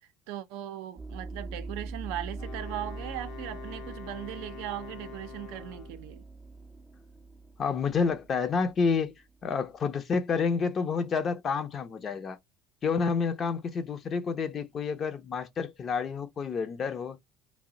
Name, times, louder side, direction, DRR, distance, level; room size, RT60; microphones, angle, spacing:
voice 1, 0.3-6.2, right 13 dB, 85° right, 0.4 m, -38 dB
sound 1, 1.0-9.7, right 3 dB, 10° right, 0.4 m, -43 dB
Wind instrument woodwind instrument, 2.3-6.1, left 9 dB, 65° left, 0.8 m, -46 dB
voice 2, 7.6-9.1 9.4-12.4 12.8-17.2, left 5 dB, 40° left, 0.6 m, -29 dB
2.6 x 2.0 x 3.7 m
cardioid pair, 120°, 0 cm